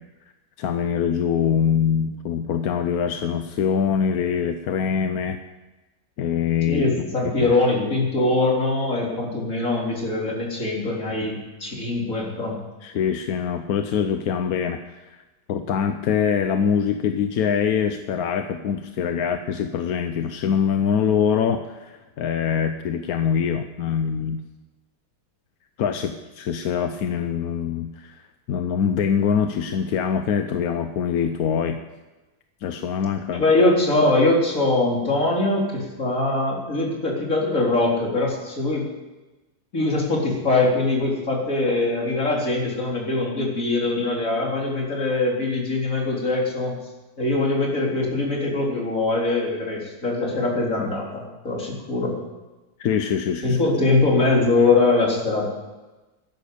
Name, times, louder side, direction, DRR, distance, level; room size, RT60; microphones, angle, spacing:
voice 1, 0.6-5.4 6.2-6.8 7.4-7.5 12.8-15.0 15.5-24.4 25.8-28.2 28.5-31.8 32.6-33.4 52.8-53.6, left 7 dB, 60° left, 7 dB, 1.1 m, -24 dB
voice 2, 6.7-12.6 33.3-38.8 39.7-46.7 47.2-52.2 53.4-55.4, left 2 dB, 45° left, -2 dB, 4.2 m, -22 dB
13.5 x 11.0 x 8.4 m, 1.1 s
omnidirectional pair, 2.0 m